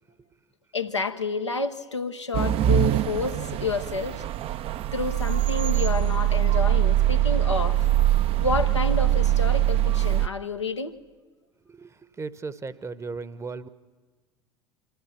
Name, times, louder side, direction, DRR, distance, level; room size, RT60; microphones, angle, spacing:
voice 1, 0.7-4.2 4.9-7.9 8.4-10.9, left 4 dB, 85° left, 5 dB, 0.9 m, -29 dB
sound 1, 2.3-10.3, right 13 dB, 40° right, 0.6 m, -23 dB
voice 2, 11.6-13.7, right 4 dB, 20° right, 15 dB, 0.9 m, -36 dB
26.0 x 14.0 x 8.3 m, 1.3 s
figure-of-eight pair, 70°, 15 cm